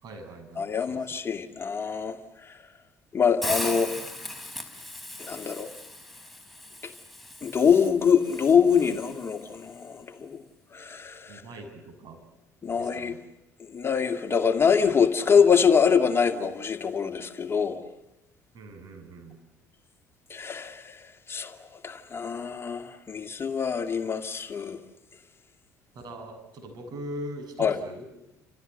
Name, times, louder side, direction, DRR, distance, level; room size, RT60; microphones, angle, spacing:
voice 1, 0.0-1.0 11.3-12.2 12.8-13.2 18.5-19.4 25.9-28.1, right 1 dB, 50° right, 6.8 m, -41 dB
voice 2, 0.6-2.2 2.4-2.6 3.1-3.9 5.2-5.7 6.8-6.9 7.4-10.4 10.7-11.4 12.6-13.1 13.6-17.8 20.3-24.8 27.6-27.8, left 6 dB, 30° left, 2.2 m, -24 dB
Hiss, 3.4-9.5, left 1 dB, ahead, 4.8 m, -38 dB
30.0 x 27.5 x 6.8 m
figure-of-eight pair, 55°, 9 cm